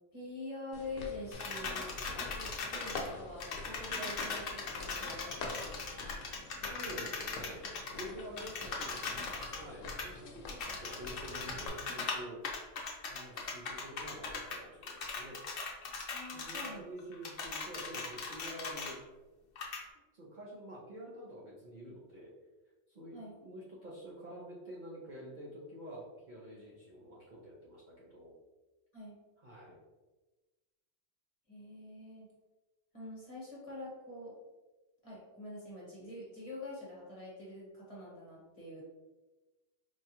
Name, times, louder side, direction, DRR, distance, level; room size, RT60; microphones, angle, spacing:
voice 1, 0.1-1.9 2.3-6.0 16.1-16.8 23.1-23.3 28.9-29.1 31.5-32.3 32.9-34.4 35.0-38.8, left 2 dB, 30° left, -6 dB, 1.1 m, -46 dB
sound 1, 0.7-11.7, left 3 dB, 90° left, 1.0 m, -46 dB
sound 2, 1.3-3.1 3.4-9.6 9.9-10.1 10.5-12.2 12.4-14.6 14.8-16.7 17.0-18.9 19.6-19.8, left 4 dB, 55° left, 0.8 m, -39 dB
voice 2, 6.6-7.6 7.9-12.4 13.1-15.4 16.3-19.0 20.1-22.3 22.9-28.3 29.4-29.8, equal, 45° right, -6 dB, 0.7 m, -48 dB
4.6 x 2.3 x 2.8 m, 1.1 s
omnidirectional pair, 1.3 m